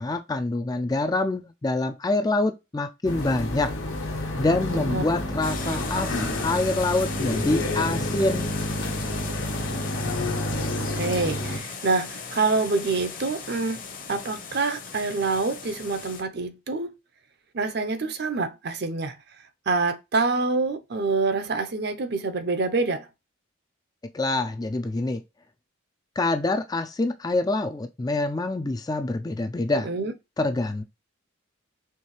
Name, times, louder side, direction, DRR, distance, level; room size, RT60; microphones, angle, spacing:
voice 1, 0.0-3.7 4.4-8.6 24.1-25.2 26.2-29.9 30.4-30.8, left 2 dB, 20° left, 0.3 m, -26 dB
sound 1, 3.0-11.6, left 1 dB, 75° left, 1.2 m, -29 dB
voice 2, 4.7-5.0 5.6-5.8 10.9-13.8 14.1-16.9 17.5-19.2 19.7-23.1 29.8-30.1, right 3 dB, 50° right, 0.6 m, -26 dB
sound 2, 5.4-16.2, left 5 dB, 40° left, 0.8 m, -37 dB
4.5 x 3.2 x 3.1 m
head